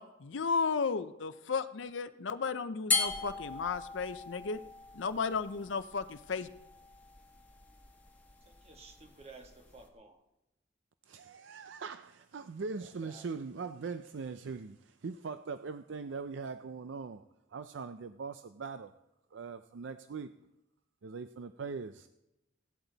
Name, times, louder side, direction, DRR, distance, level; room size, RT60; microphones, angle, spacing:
voice 1, 0.0-4.6 4.9-6.5, left 5 dB, 75° left, 12 dB, 0.6 m, -34 dB
sound 1, 2.9-9.9, left 4 dB, 10° left, 1.4 m, -39 dB
voice 2, 8.5-10.2 12.8-13.3, right 3 dB, 35° right, 4 dB, 1.6 m, -54 dB
voice 3, 11.1-17.2 17.5-18.9 19.3-20.3 21.0-22.1, right 4 dB, 75° right, 10 dB, 0.5 m, -41 dB
16.0 x 12.0 x 4.0 m, 0.94 s
head